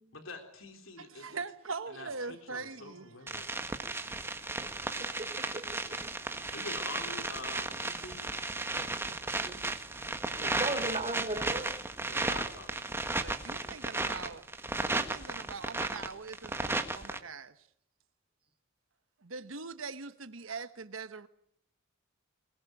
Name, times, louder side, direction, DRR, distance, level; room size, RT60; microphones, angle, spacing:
voice 1, 0.1-1.4 1.9-3.5 6.5-8.2 10.4-11.0 12.1-13.4, left 3 dB, 75° left, 3.5 m, -46 dB
voice 2, 1.0-3.3 13.2-14.5 14.8-17.6 19.2-21.3, right 4 dB, 75° right, 1.2 m, -42 dB
sound 1, 3.3-17.2, right 2 dB, 10° right, 1.6 m, -35 dB
voice 3, 4.6-6.0 6.8-6.9 8.7-9.6 10.4-12.3, right 2 dB, 30° right, 3.5 m, -39 dB
23.0 x 20.5 x 9.0 m
head